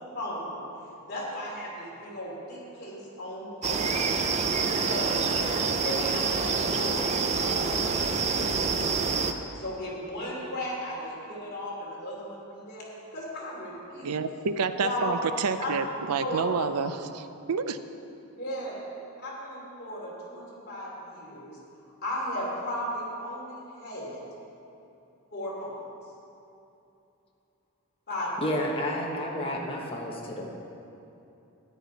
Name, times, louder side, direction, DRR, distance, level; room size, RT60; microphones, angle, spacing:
voice 1, 0.1-0.6 1.1-4.2 4.6-5.4 5.8-9.3 9.6-12.9 13.1-14.2 14.8-15.1 15.6-15.7 16.2-16.4 18.4-18.7 19.2-21.6 22.0-24.2 25.3-25.8 28.1-28.3, left 1 dB, 45° left, -5 dB, 3.1 m, -36 dB
sound 1, 3.6-9.3, right 4 dB, 30° right, 0.5 m, -27 dB
voice 2, 14.0-17.8, right 5 dB, 90° right, 11 dB, 0.5 m, -29 dB
voice 3, 28.4-30.6, left 1 dB, 25° left, -2 dB, 1.2 m, -31 dB
13.5 x 10.0 x 4.1 m, 2.8 s
head